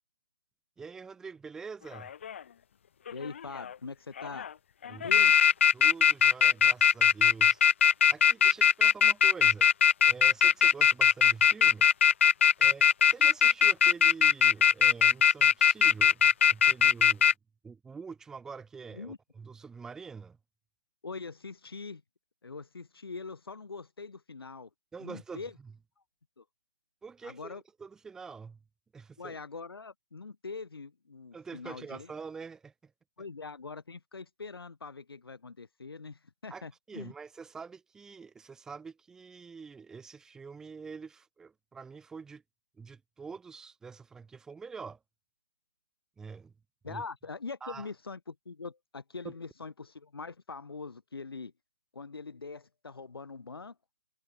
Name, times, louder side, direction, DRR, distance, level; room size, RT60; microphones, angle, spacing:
voice 1, 0.8-2.1 4.9-5.2 5.7-7.6 8.1-9.7 10.0-11.9 12.6-17.3 17.6-20.4 24.9-25.7 27.0-28.6 28.9-29.4 31.3-32.9 36.5-42.4 42.8-45.0 46.2-46.5 46.9-47.0 47.6-47.9 49.2-49.3, right 5 dB, 5° right, 5.1 m, -45 dB
sound 1, 2.0-2.4 3.1-3.7 4.2-4.5 4.8-17.3, left 8 dB, 30° left, 0.6 m, -21 dB
voice 2, 3.1-4.5 4.8-5.4 18.9-19.2 21.0-22.0 22.4-24.7 25.0-25.5 26.4-26.5 27.2-27.6 29.2-32.1 33.2-37.1 46.8-51.5 51.9-53.7, left 4 dB, 80° left, 4.7 m, -42 dB
hypercardioid pair, 170°, 12 cm